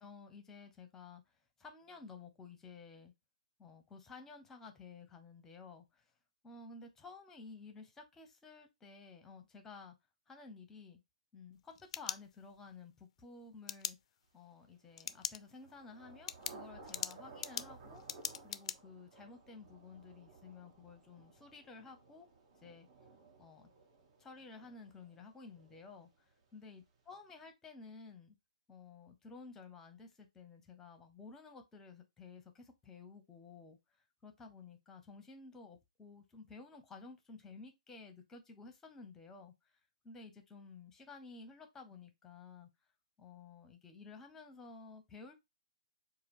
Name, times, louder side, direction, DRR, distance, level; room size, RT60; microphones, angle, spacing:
voice 1, 0.0-1.2 1.6-3.1 3.6-6.1 6.4-9.9 10.3-11.0 11.3-14.0 14.3-18.0 18.4-22.3 22.6-22.9 23.4-23.7 24.2-28.3 28.7-33.8 34.2-39.5 40.0-42.7 43.2-45.3, left 4 dB, 10° left, 0.7 m, -53 dB
sound 1, 11.5-12.7 13.7-13.9 15.0-15.4 15.8-15.9 16.3-18.8, left 9 dB, 55° left, 0.3 m, -41 dB
Thunder / Rain, 14.8-26.4, right 3 dB, 60° right, 1.5 m, -58 dB
4.4 x 2.3 x 3.5 m
hypercardioid pair, 145°, 4 cm